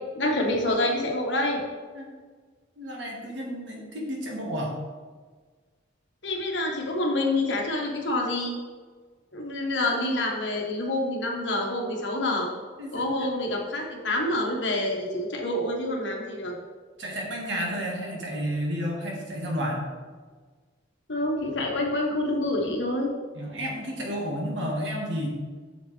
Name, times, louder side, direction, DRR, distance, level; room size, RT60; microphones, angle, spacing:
voice 1, 0.1-1.6 6.2-8.6 9.3-12.5 12.9-16.5 21.1-23.1, left 1 dB, 75° left, 0 dB, 1.4 m, -27 dB
voice 2, 2.8-4.7 12.8-13.3 17.0-19.9 23.3-25.3, equal, 75° right, -1 dB, 1.7 m, -31 dB
7.2 x 7.1 x 3.4 m, 1.5 s
head